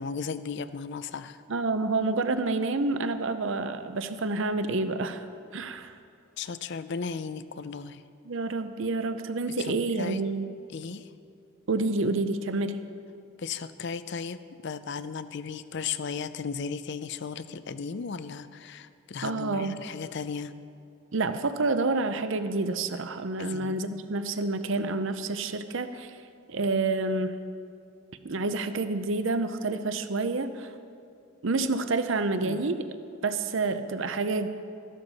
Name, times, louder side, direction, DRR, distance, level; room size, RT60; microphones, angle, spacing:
voice 1, 0.0-1.4 6.4-8.0 9.6-10.2 10.7-11.1 13.4-20.5 23.4-24.0 32.4-32.6, left 5 dB, 50° left, 13 dB, 0.4 m, -36 dB
voice 2, 1.5-5.2 5.5-5.9 8.2-10.5 11.7-12.8 19.2-19.7 21.1-26.2 26.5-27.3 28.2-30.7 31.4-32.9 33.2-34.5, right 3 dB, 60° right, 10 dB, 0.6 m, -28 dB
15.0 x 11.5 x 4.1 m, 2.4 s
head